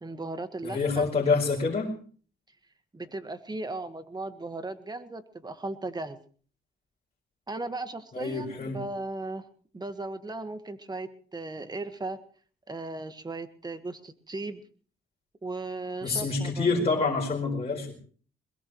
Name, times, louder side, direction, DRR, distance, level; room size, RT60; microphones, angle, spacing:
voice 1, 0.0-1.1 2.9-6.2 7.5-9.5 9.7-12.2 12.7-14.6 15.4-16.7, right 2 dB, 20° right, 10 dB, 1.6 m, -36 dB
voice 2, 0.6-1.9 8.1-8.8 16.0-17.9, left 4 dB, 30° left, -3 dB, 4.7 m, -27 dB
22.0 x 21.0 x 3.2 m, 0.43 s
cardioid pair, 90°, 20 cm